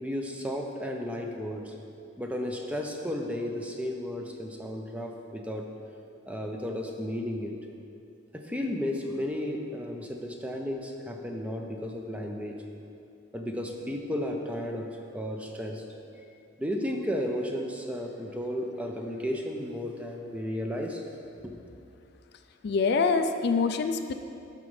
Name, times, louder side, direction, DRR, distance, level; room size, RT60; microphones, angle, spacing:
voice 1, 0.0-1.7 2.2-5.6 6.3-7.5 8.3-12.6 13.3-14.9 15.1-15.8 16.1-16.3 16.6-21.0 21.4-21.6, equal, 5° right, 1 dB, 0.5 m, -33 dB
voice 2, 22.6-24.1, left 4 dB, 55° left, 8 dB, 0.3 m, -25 dB
13.0 x 5.2 x 3.2 m, 2.5 s
head